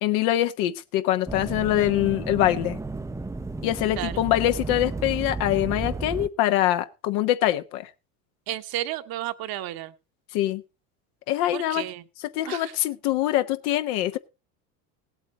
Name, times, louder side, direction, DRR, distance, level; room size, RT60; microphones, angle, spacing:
voice 1, 0.0-2.8 3.6-7.9 10.3-10.6 11.3-11.8 12.3-14.2, left 13 dB, 70° left, 10 dB, 1.2 m, -24 dB
sound 1, 1.3-6.3, right 3 dB, 5° right, 0.6 m, -33 dB
voice 2, 8.5-9.9 11.5-12.0 12.5-12.7, right 14 dB, 50° right, 10 dB, 1.2 m, -32 dB
17.5 x 8.2 x 4.2 m, 0.29 s
hypercardioid pair, 85°, 45 cm